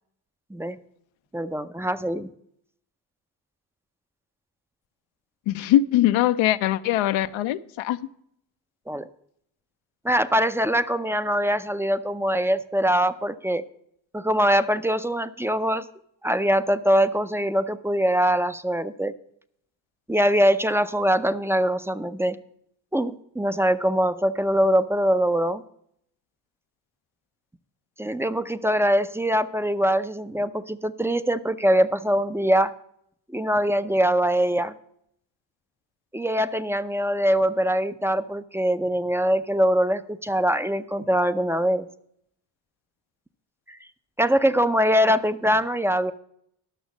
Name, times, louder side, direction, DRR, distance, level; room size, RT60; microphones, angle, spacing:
voice 1, 1.3-2.3 8.9-9.1 10.0-13.6 14.1-15.9 16.2-19.1 20.1-22.4 22.9-25.6 28.0-32.7 33.3-34.8 36.1-41.9 43.7-43.8 44.2-46.1, equal, 5° right, 0.5 m, -23 dB
voice 2, 5.5-8.0, left 13 dB, 75° left, 0.7 m, -22 dB
11.5 x 6.2 x 7.1 m
cardioid pair, 70°, 46 cm